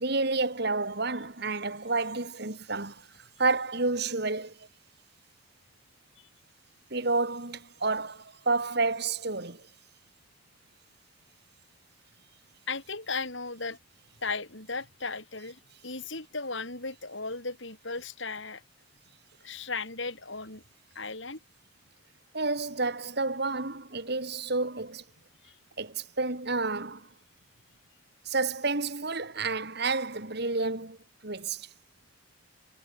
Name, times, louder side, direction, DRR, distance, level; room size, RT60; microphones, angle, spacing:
voice 1, 0.0-3.0 3.4-4.5 6.9-9.6 22.3-25.0 25.8-27.1 28.3-31.0 31.2-31.7, right 3 dB, 50° right, 2.2 m, -30 dB
voice 2, 12.7-13.8 14.2-18.6 19.4-20.6 20.9-21.4 25.4-25.5, left 4 dB, 65° left, 5.7 m, -36 dB
head